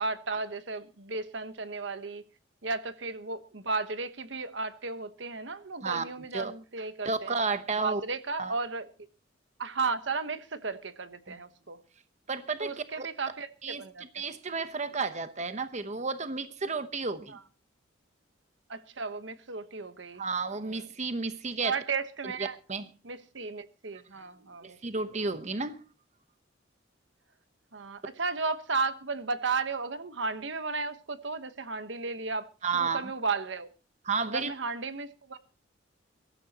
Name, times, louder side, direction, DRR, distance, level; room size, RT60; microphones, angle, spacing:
voice 1, 0.0-2.2 2.6-7.4 7.8-8.9 9.6-11.8 12.6-14.0 17.3-17.4 18.7-20.2 20.6-20.8 21.6-22.6 23.0-25.0 27.7-32.5 32.7-33.7 34.3-35.4, right 4 dB, 70° right, 1.1 m, -34 dB
voice 2, 7.0-8.0 8.4-8.5 11.3-11.4 12.3-13.1 13.6-13.8 14.1-17.3 20.2-21.8 22.7-22.9 24.6-25.8 32.6-33.1 34.0-34.5, right 4 dB, 35° right, 0.9 m, -32 dB
22.5 x 13.5 x 2.9 m
head